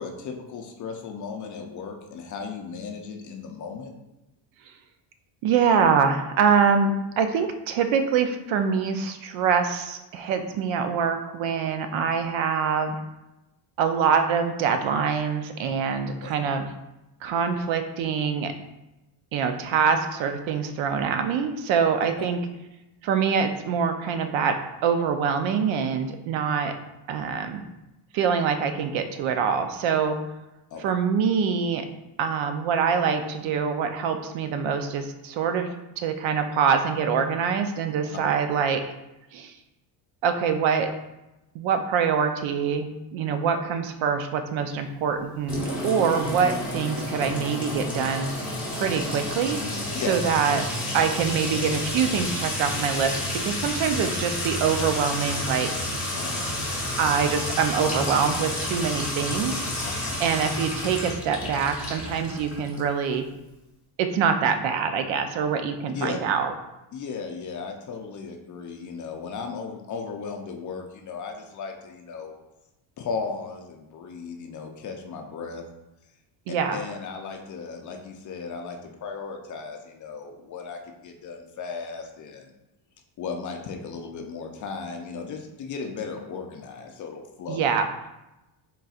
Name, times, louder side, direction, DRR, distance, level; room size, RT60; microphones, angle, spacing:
voice 1, 0.0-3.9 16.2-16.3 22.2-22.3 30.7-30.8 49.9-50.2 56.2-56.5 59.8-60.2 65.9-66.2 66.9-72.3 73.0-75.6 76.7-82.5 83.2-87.6, left 5 dB, 40° left, 3 dB, 0.4 m, -36 dB
voice 2, 5.4-13.0 13.8-16.7 17.2-18.5 19.3-22.4 23.0-26.7 27.1-27.6 28.1-30.2 30.8-31.9 32.2-38.8 39.3-39.6 40.2-40.9 41.5-48.3 48.8-49.6 50.1-50.6 50.9-55.7 57.0-59.6 60.2-63.2 64.0-66.5 76.5-76.8 87.5-87.9, right 6 dB, 70° right, 7 dB, 0.6 m, -24 dB
Sink (filling or washing) / Trickle dribble / Fill (with liquid), 45.5-62.9, left 1 dB, 5° right, 0.9 m, -30 dB
4.0 x 3.9 x 2.4 m, 0.97 s
cardioid pair, 145°, 48 cm